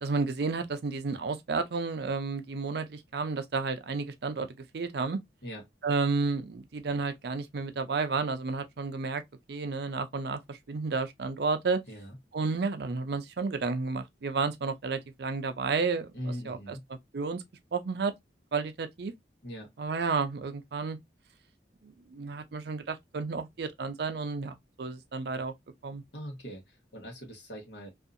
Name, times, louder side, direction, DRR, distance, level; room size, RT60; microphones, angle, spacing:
voice 1, 0.0-4.5 4.7-5.2 5.8-9.2 9.5-11.8 12.3-16.1 16.5-16.8 17.1-17.4 17.7-18.1 18.5-19.1 19.8-21.0 21.8-25.5 25.8-26.0, right 4 dB, 60° right, 0.5 m, -31 dB
voice 2, 16.1-16.8 19.4-19.7 26.1-27.9, equal, 75° left, 1.2 m, -41 dB
2.7 x 2.4 x 2.4 m
head